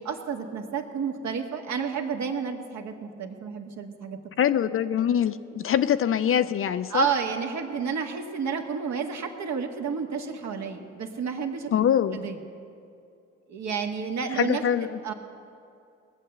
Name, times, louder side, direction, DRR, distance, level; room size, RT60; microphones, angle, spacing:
voice 1, 0.0-4.2 5.5-5.6 6.9-11.7 12.1-12.4 13.5-14.6 15.0-15.1, right 6 dB, 55° right, 3 dB, 1.6 m, -31 dB
voice 2, 4.4-7.1 11.7-12.2 14.4-15.0, left 9 dB, 40° left, 12 dB, 0.5 m, -23 dB
20.0 x 7.7 x 6.7 m, 2.5 s
hypercardioid pair, 50°, 34 cm